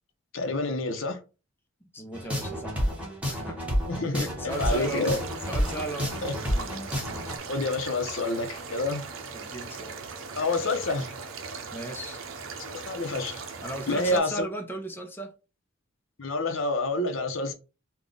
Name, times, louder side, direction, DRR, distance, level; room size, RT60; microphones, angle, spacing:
voice 1, 0.3-1.2 3.9-5.2 6.2-6.3 7.5-9.0 10.4-11.1 12.7-13.4 13.9-14.5 16.2-17.5, left 2 dB, 75° left, 0.8 m, -28 dB
voice 2, 1.8-3.0 3.3-3.6 4.1-5.1 5.5-6.1 6.5-6.7 9.3-10.0 11.7-12.2 13.6-15.3, right 2 dB, 10° left, 0.6 m, -36 dB
sound 1, 2.1-7.4, equal, 5° right, 1.2 m, -30 dB
sound 2, 4.5-14.2, right 5 dB, 85° right, 0.7 m, -39 dB
3.6 x 2.3 x 3.8 m
head